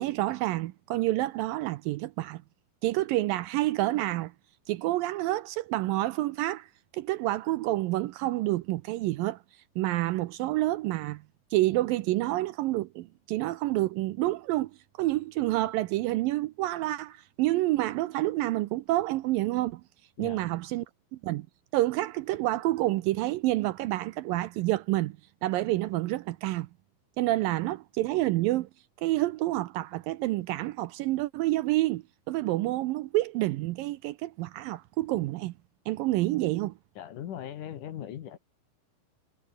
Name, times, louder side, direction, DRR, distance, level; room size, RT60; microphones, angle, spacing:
voice 1, 0.0-2.4 2.8-4.3 4.7-6.7 6.9-9.4 9.8-11.2 11.5-14.7 15.0-19.8 20.2-20.8 21.1-21.5 21.7-25.2 25.4-26.7 27.2-28.7 29.0-35.5 35.9-36.7, right 17 dB, 80° right, 2.2 m, -28 dB
voice 2, 37.0-38.4, left 10 dB, 60° left, 2.8 m, -39 dB
omnidirectional pair, 4.5 m